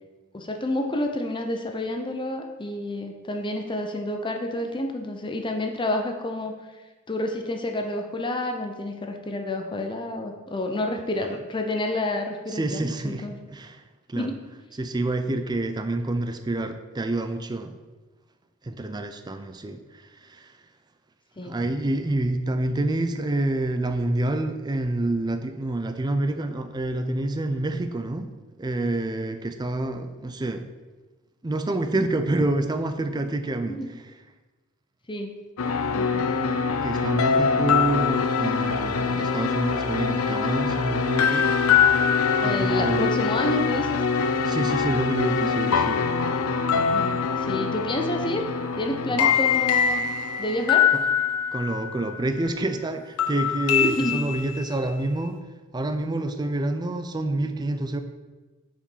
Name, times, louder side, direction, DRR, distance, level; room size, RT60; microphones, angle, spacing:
voice 1, 0.3-6.5 7.1-13.4 14.2-14.4 21.4-21.6 33.7-33.9 35.1-35.3 35.9-36.2 42.4-44.0 46.7-48.4 48.8-50.0 50.4-50.9 53.8-54.2, left 1 dB, 20° left, 4 dB, 0.7 m, -29 dB
voice 2, 12.5-13.8 14.1-14.3 14.8-17.7 18.6-20.5 21.4-28.3 28.6-30.7 31.4-34.1 36.8-41.5 42.4-43.1 44.4-46.1 49.1-49.4 50.9-51.0 51.5-55.4 55.7-58.0, right 2 dB, 20° right, 8 dB, 0.4 m, -28 dB
sound 1, 35.6-52.2 53.2-54.9, left 6 dB, 85° left, 0.5 m, -23 dB
7.0 x 5.1 x 5.5 m, 1.2 s
head